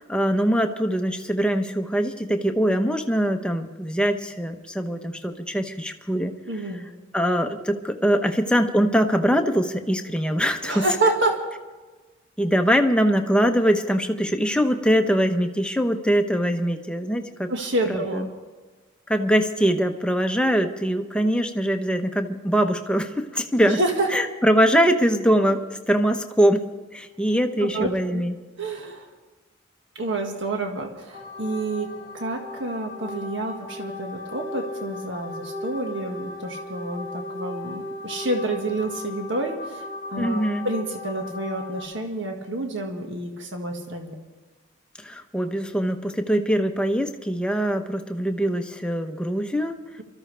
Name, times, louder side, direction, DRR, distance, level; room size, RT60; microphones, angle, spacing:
voice 1, 0.0-6.3 7.1-10.9 12.4-17.5 17.9-18.2 19.1-23.8 24.1-26.6 26.9-28.3 40.2-40.7 45.0-49.8, equal, 5° left, 5 dB, 0.8 m, -22 dB
voice 2, 6.4-6.8 10.6-11.4 17.5-18.3 23.6-24.1 27.6-28.2 28.6-29.1 29.9-44.1, right 2 dB, 60° right, 3 dB, 1.7 m, -28 dB
sound 1, 31.1-41.8, left 2 dB, 25° right, 3.0 m, -36 dB
23.5 x 14.0 x 3.4 m, 1.3 s
head